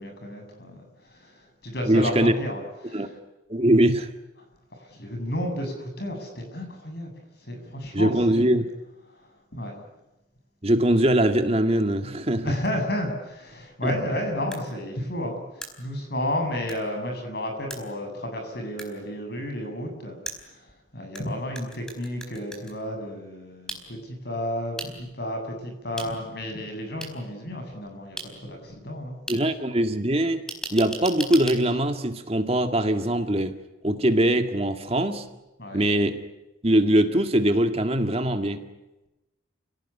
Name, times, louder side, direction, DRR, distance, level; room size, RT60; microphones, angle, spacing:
voice 1, 0.0-3.1 4.8-7.1 7.4-8.6 9.1-9.8 12.4-29.2 35.6-35.8, left 1 dB, 55° left, 4 dB, 7.6 m, -32 dB
voice 2, 1.9-2.3 2.9-3.1 3.5-4.1 7.9-8.6 10.6-12.5 13.8-14.0 29.3-30.4 30.7-33.5 33.8-35.3 35.7-36.2 36.6-38.6, right 1 dB, 30° right, 7 dB, 1.9 m, -22 dB
sound 1, 14.5-14.6 15.6-15.7 16.7-16.8 17.7-17.8 18.8-18.9 20.3-21.2 21.6-22.7 23.7-23.8 24.8-24.9 26.0-26.1 27.0-27.1 28.2-28.3 29.3-29.4 30.5-31.6, right 1 dB, 5° left, 4.3 m, -35 dB
30.0 x 18.0 x 9.9 m, 1.0 s
head